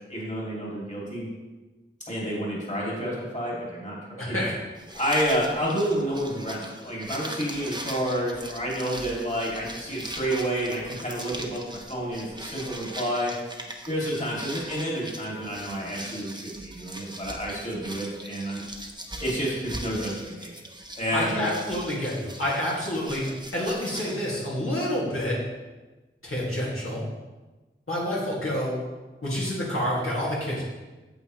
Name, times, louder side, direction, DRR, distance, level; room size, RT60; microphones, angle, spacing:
voice 1, 0.1-1.3 2.1-4.0 4.3-4.5 4.9-13.3 13.9-18.6 19.2-20.1 20.4-20.5 21.0-21.5, equal, 35° left, -5 dB, 2.5 m, -29 dB
voice 2, 4.2-4.5 21.1-23.2 23.5-25.4 26.2-27.0 27.9-28.8 29.2-30.6, left 1 dB, 80° left, -7 dB, 2.3 m, -28 dB
sound 1, 4.7-24.2, right 1 dB, 20° right, 0.9 m, -40 dB
9.0 x 7.3 x 3.1 m, 1.2 s
wide cardioid pair, 50°, 21 cm